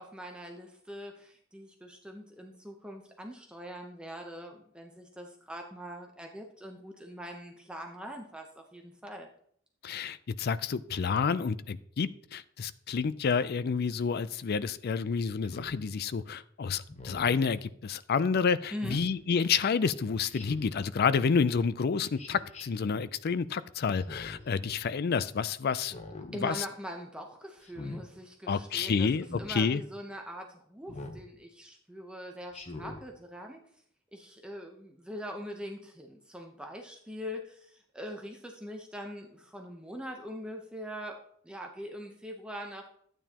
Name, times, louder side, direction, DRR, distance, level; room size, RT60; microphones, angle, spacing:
voice 1, 0.0-9.3 18.7-19.0 26.3-29.1 29.4-33.6 34.1-41.2 41.4-42.9, equal, 5° right, 2 dB, 0.8 m, -42 dB
voice 2, 9.8-26.0 26.2-26.7 28.5-29.8, left 5 dB, 50° left, 15 dB, 0.4 m, -29 dB
Speech synthesizer, 15.4-15.8 16.9-17.4 18.8-19.1 20.3-20.8 22.2-22.6 23.9-24.5 25.8-26.3 27.6-28.0 29.2-29.5 30.9-31.2 32.5-33.0, left 2 dB, 35° left, 1.0 m, -43 dB
12.5 x 8.9 x 2.9 m, 0.65 s
head